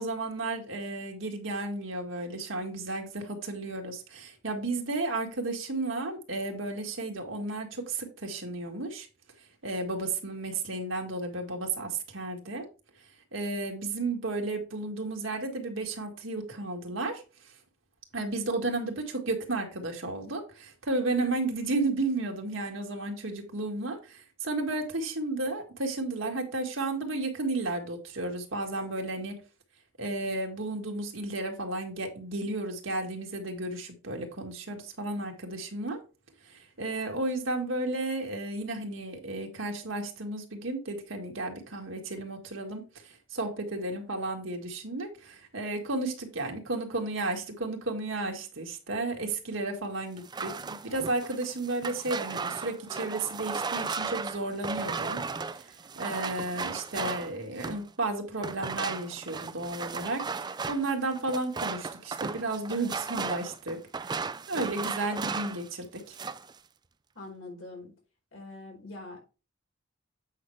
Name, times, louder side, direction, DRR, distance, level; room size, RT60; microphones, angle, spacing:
voice 1, 0.0-9.1 9.6-12.7 13.3-17.2 18.1-29.4 30.0-36.0 36.5-55.2 55.6-60.2 60.7-64.2 64.5-66.1, right 2 dB, 75° right, 1.9 m, -33 dB
sound 1, 50.2-57.9 58.4-65.7 66.0-66.5, right 4 dB, 20° right, 0.4 m, -35 dB
voice 2, 67.1-67.9 68.3-69.2, left 2 dB, 80° left, 4.5 m, -43 dB
8.4 x 5.9 x 3.2 m
head